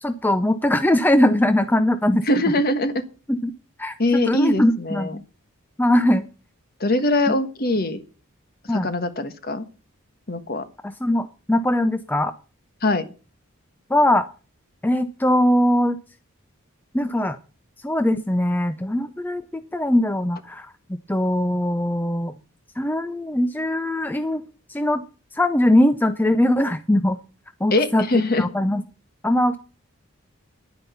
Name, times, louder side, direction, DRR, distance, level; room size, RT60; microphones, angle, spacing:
voice 1, 0.0-2.2 3.3-3.5 3.8-5.2 5.8-6.2 8.7-8.9 10.8-12.3 13.9-14.3 14.8-16.0 16.9-17.4 17.8-20.7 21.1-22.3 22.8-24.4 24.7-25.0 25.3-27.2 27.6-28.0 28.4-28.8 29.2-29.6, left 1 dB, 10° left, 10 dB, 0.5 m, -21 dB
voice 2, 2.3-3.0 4.0-5.2 6.8-8.0 8.7-9.6 10.3-10.6 12.8-13.0 27.7-28.5, left 2 dB, 45° left, 10 dB, 1.3 m, -22 dB
10.5 x 9.6 x 6.9 m, 0.36 s
head